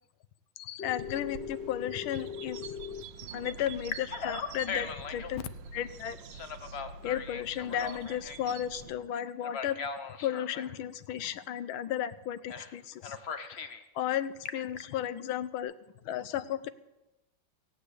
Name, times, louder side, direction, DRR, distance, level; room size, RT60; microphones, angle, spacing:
voice 1, 0.6-2.8 3.3-6.2 6.7-9.8 10.2-13.7 13.9-15.8 16.0-16.7, left 10 dB, 80° left, 15 dB, 1.5 m, -34 dB
Telephone, 0.8-3.0 3.6-5.3 6.3-8.6 9.4-10.7 12.5-12.7 13.0-13.8 14.2-14.8, left 6 dB, 50° left, 0.7 m, -39 dB
sound 1, 1.0-8.9, right 6 dB, 75° right, 1.3 m, -47 dB
17.0 x 8.1 x 8.4 m, 0.97 s
omnidirectional pair, 2.2 m